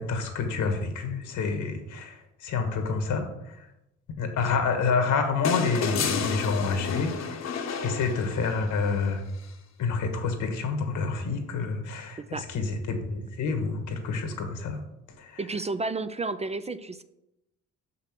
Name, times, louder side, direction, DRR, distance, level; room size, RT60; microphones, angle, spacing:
voice 1, 0.0-3.7 4.2-7.5 7.8-9.2 9.8-14.8 15.2-15.4, left 4 dB, 80° left, 5 dB, 1.6 m, -28 dB
sound 1, 5.4-8.8 10.3-10.4, left 6 dB, 60° left, 1.1 m, -31 dB
voice 2, 15.4-17.0, right 3 dB, 20° right, 12 dB, 0.4 m, -31 dB
6.4 x 5.8 x 6.1 m, 0.89 s
cardioid pair, 90°, 30 cm